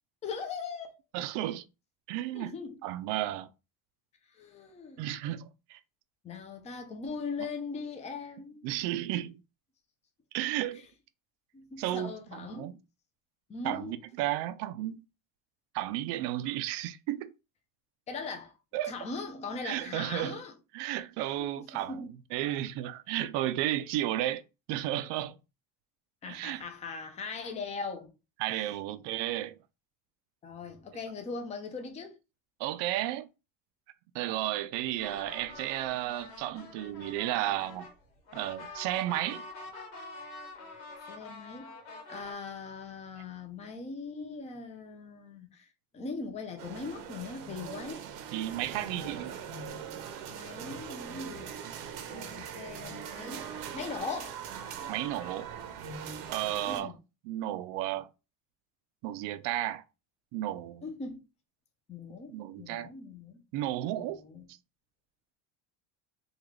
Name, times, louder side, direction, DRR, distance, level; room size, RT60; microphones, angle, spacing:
voice 1, 0.2-0.9 2.3-2.8 4.3-5.0 6.2-8.7 11.5-12.8 13.5-14.0 18.1-18.5 18.8-20.5 21.4-22.1 26.2-28.1 30.4-32.2 41.1-41.7 42.1-45.7 45.9-48.1 48.7-49.4 50.3-51.5 52.1-54.4 56.6-56.9 60.8-61.2 61.9-63.4 64.0-64.5, left 4 dB, 15° left, 0.5 m, -40 dB
voice 2, 1.1-1.6 2.1-2.6 2.8-3.5 5.0-5.8 8.6-9.4 10.3-10.8 11.8-12.7 13.6-15.1 15.7-17.3 18.7-18.9 19.6-20.4 20.7-24.4 24.7-25.4 26.3-26.6 28.4-29.6 32.6-33.3 34.1-37.9 38.3-39.4 48.3-49.4 54.9-55.5 56.3-56.9 57.3-58.1 59.0-59.8 60.3-60.8 62.3-62.9 63.5-64.2, right 14 dB, 65° right, 0.5 m, -33 dB
sound 1, 35.0-42.3, left 2 dB, 75° left, 1.5 m, -46 dB
sound 2, 46.6-56.8, right 8 dB, 85° right, 0.9 m, -41 dB
3.6 x 2.4 x 3.1 m
cardioid pair, 140°, 46 cm